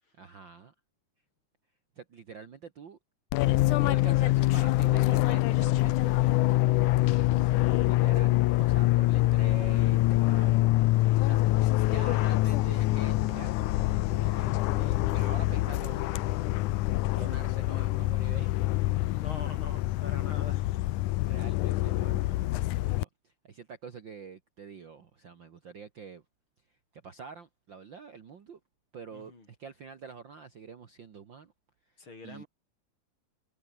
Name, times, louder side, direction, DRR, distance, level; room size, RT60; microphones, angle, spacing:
voice 1, 0.2-0.7 2.0-3.0 3.8-6.4 7.9-8.3 8.6-16.2 17.1-18.7 21.3-26.2 26.9-28.6 28.9-31.5 32.2-32.4, right 5 dB, 45° right, 1.9 m, -46 dB
Fixed-wing aircraft airplane, 3.3-23.0, left 17 dB, 90° left, 2.2 m, -25 dB
voice 2, 7.3-7.9 19.2-20.6 29.1-29.5 32.0-32.5, left 3 dB, 40° left, 6.4 m, -45 dB
open air
omnidirectional pair, 3.5 m